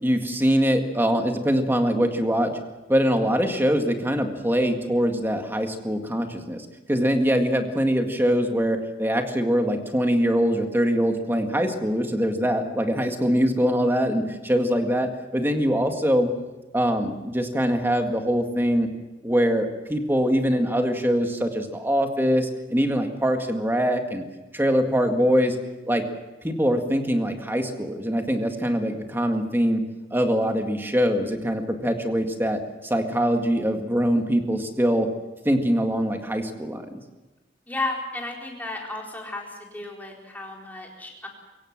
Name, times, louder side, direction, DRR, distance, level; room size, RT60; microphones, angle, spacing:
voice 1, 0.0-2.5 2.9-16.3 16.7-18.9 19.2-24.2 24.5-25.6 25.9-26.0 26.4-29.8 30.1-35.1 35.5-36.8, equal, 10° right, 4 dB, 2.0 m, -23 dB
voice 2, 37.7-41.3, left 2 dB, 10° left, -1 dB, 4.2 m, -33 dB
23.0 x 17.0 x 7.5 m, 1.1 s
head